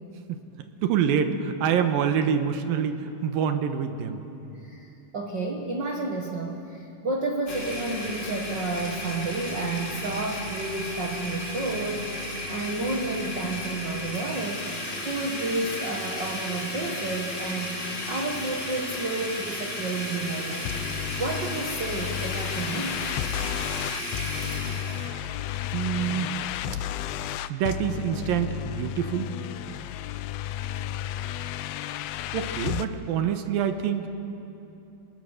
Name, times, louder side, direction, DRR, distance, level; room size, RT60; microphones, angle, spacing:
voice 1, 0.8-4.2 25.7-26.4 27.5-29.4 32.3-34.2, right 8 dB, 75° right, 7 dB, 2.9 m, -26 dB
voice 2, 4.6-14.7 15.0-20.7 21.2-23.0, right 2 dB, 45° right, 0 dB, 1.4 m, -31 dB
Domestic sounds home sounds, 7.5-25.1, left 1 dB, 20° left, 2.1 m, -34 dB
sound 1, 20.7-32.9, left 11 dB, 85° left, 2.6 m, -33 dB
29.5 x 20.0 x 6.7 m, 2.8 s
omnidirectional pair, 4.3 m